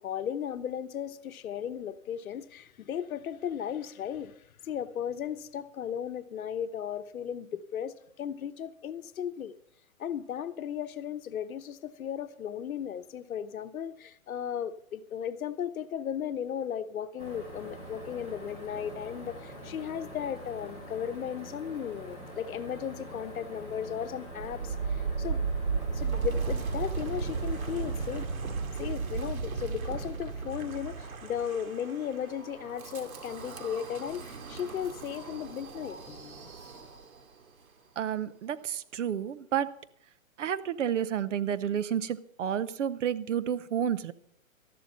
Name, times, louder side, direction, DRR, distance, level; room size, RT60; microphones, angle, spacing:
voice 1, 0.0-9.5 10.0-25.5 25.9-28.3 28.8-36.5, left 9 dB, 85° left, 11 dB, 1.0 m, -36 dB
sound 1, 17.2-28.3, right 1 dB, 15° right, 3.7 m, -45 dB
Wind, 24.3-37.3, right 5 dB, 85° right, 2.3 m, -35 dB
voice 2, 38.0-39.7 40.4-44.1, right 9 dB, 60° right, 16 dB, 0.9 m, -30 dB
13.0 x 11.5 x 5.5 m, 0.69 s
hypercardioid pair, 160°, 42 cm